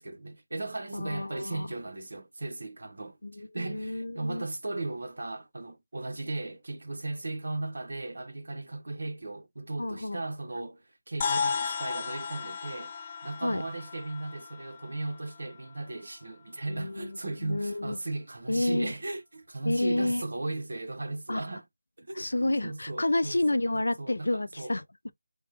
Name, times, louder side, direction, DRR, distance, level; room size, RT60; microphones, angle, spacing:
voice 1, 0.0-3.2 3.5-12.9 13.2-21.6 22.0-22.3 22.6-23.6 24.0-24.3 24.6-24.7, right 2 dB, 60° right, 0.9 m, -36 dB
voice 2, 0.9-1.7 3.2-4.5 9.8-10.2 11.6-11.8 13.4-13.6 16.7-18.0 18.5-18.9 19.7-20.2 21.3-21.4 22.1-25.1, left 1 dB, 90° left, 0.5 m, -30 dB
sound 1, 11.2-15.8, left 5 dB, 15° left, 0.3 m, -34 dB
3.4 x 2.2 x 2.8 m
figure-of-eight pair, 175°, 0 cm